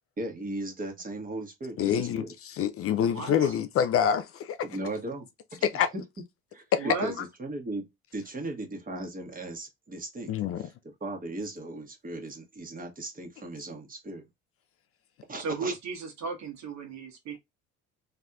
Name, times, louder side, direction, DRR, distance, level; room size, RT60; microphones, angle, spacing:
voice 1, 0.2-2.3 4.6-5.3 5.5-5.6 5.9-6.0 6.5-7.9 8.1-10.3 10.6-10.7 11.0-14.2 15.3-15.7, right 2 dB, 25° right, 1.3 m, -37 dB
voice 2, 1.8-4.6 5.6-5.9 6.7-6.9 10.3-10.7, left 8 dB, 45° left, 0.4 m, -26 dB
voice 3, 3.0-3.6 6.8-7.1 15.4-17.4, right 3 dB, 55° right, 1.3 m, -35 dB
3.3 x 2.8 x 2.3 m
hypercardioid pair, 70°, 33 cm